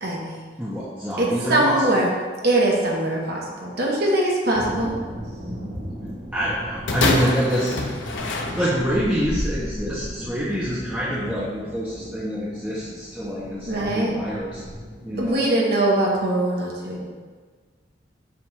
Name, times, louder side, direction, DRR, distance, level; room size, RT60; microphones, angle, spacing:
voice 1, 0.0-0.5 1.2-2.1 2.4-4.9 13.7-14.1 15.2-17.1, right 1 dB, 55° right, -3 dB, 1.1 m, -22 dB
voice 2, 0.6-2.1 6.3-7.7 8.5-14.6 15.0-15.5, equal, 10° right, -9 dB, 0.8 m, -26 dB
sound 1, 4.5-15.5, equal, 85° right, 1.8 m, -35 dB
sound 2, 6.9-9.1 9.9-10.0, left 2 dB, 75° left, 0.8 m, -26 dB
7.4 x 2.5 x 5.7 m, 1.5 s
head